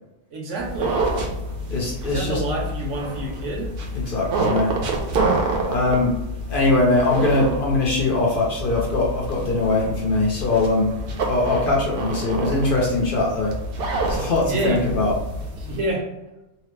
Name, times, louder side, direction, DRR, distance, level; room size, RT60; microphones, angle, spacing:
voice 1, 0.3-1.1 2.0-3.7 14.4-14.8 15.6-16.1, right 1 dB, 75° right, -1 dB, 1.1 m, -27 dB
sound 1, 0.6-15.8, right 2 dB, 60° right, 0.7 m, -28 dB
voice 2, 1.7-2.4 3.9-4.7 5.7-6.1 6.5-10.9 11.2-13.5 14.1-15.2, left 2 dB, 55° left, -3 dB, 0.7 m, -21 dB
2.8 x 2.0 x 3.0 m, 0.96 s
omnidirectional pair, 1.3 m